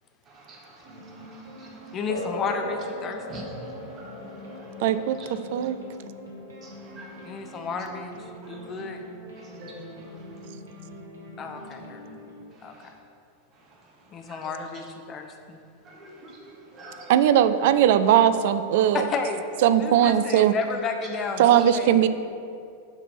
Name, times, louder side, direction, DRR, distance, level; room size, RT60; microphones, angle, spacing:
voice 1, 0.3-2.0 3.3-5.5 6.6-7.6 8.4-8.8 9.3-10.3 11.6-11.7 12.5-12.9 13.5-13.8 14.2-14.5 15.8-17.1 17.9-18.0 21.0-21.1, right 2 dB, 30° right, -2 dB, 1.7 m, -47 dB
sound 1, 0.8-12.5, equal, 70° right, 1.7 m, -44 dB
voice 2, 1.9-3.5 7.2-8.1 8.5-9.0 11.4-12.0 12.6-12.8 14.1-15.6 18.9-19.4 19.8-22.0, left 4 dB, 30° left, 5 dB, 0.8 m, -32 dB
sound 2, 2.1-10.1, left 1 dB, 75° left, 0.9 m, -40 dB
voice 3, 4.8-5.8 17.1-19.1 19.6-20.5 21.4-22.1, right 10 dB, 50° right, 12 dB, 0.3 m, -19 dB
7.2 x 5.0 x 5.7 m, 2.5 s
figure-of-eight pair, 90°, 0 cm